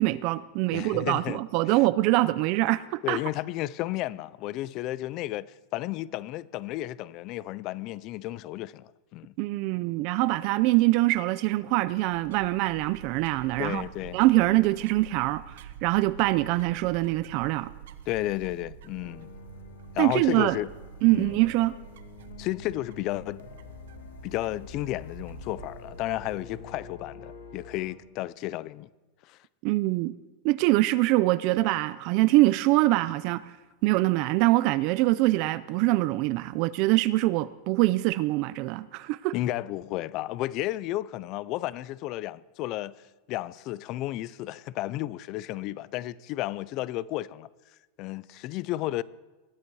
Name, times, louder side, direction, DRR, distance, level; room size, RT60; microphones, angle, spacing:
voice 1, 0.0-3.2 9.4-13.8 14.1-17.7 20.0-20.6 21.0-21.7 29.6-30.1 30.4-33.5 33.8-39.3, right 19 dB, 40° right, 0.4 m, -24 dB
voice 2, 0.7-1.4 3.0-9.3 13.6-14.2 18.1-19.3 19.9-20.7 21.1-21.3 22.4-23.4 24.2-28.9 29.3-29.4 39.3-43.0 43.3-47.5 48.0-49.0, left 15 dB, 35° left, 0.4 m, -32 dB
sound 1, 11.7-27.0, right 9 dB, 85° right, 0.9 m, -48 dB
sound 2, 19.0-28.0, left 6 dB, 85° left, 2.0 m, -47 dB
21.5 x 14.0 x 4.8 m
supercardioid pair, 175°, 0 cm